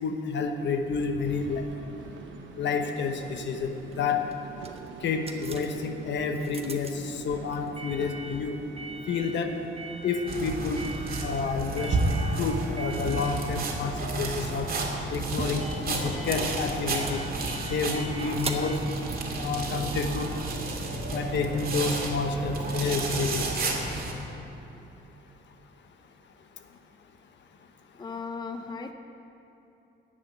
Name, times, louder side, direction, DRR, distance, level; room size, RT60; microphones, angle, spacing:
voice 1, 0.0-1.6 2.6-4.2 5.0-8.6 9.1-9.6 10.0-10.8 11.2-12.0 12.4-14.7 15.1-17.2 17.7-18.8 19.4-20.3 21.1-23.4, left 5 dB, 65° left, 6 dB, 1.1 m, -29 dB
sound 1, 1.2-12.6, right 5 dB, 75° right, 1.0 m, -46 dB
sound 2, 3.8-20.3, right 3 dB, 30° right, 1.2 m, -42 dB
sound 3, 10.3-24.1, right 2 dB, 45° right, 2.2 m, -31 dB
voice 2, 27.9-28.9, left 4 dB, 20° left, 7 dB, 0.6 m, -36 dB
10.5 x 7.6 x 9.3 m, 3.0 s
cardioid pair, 90°, 20 cm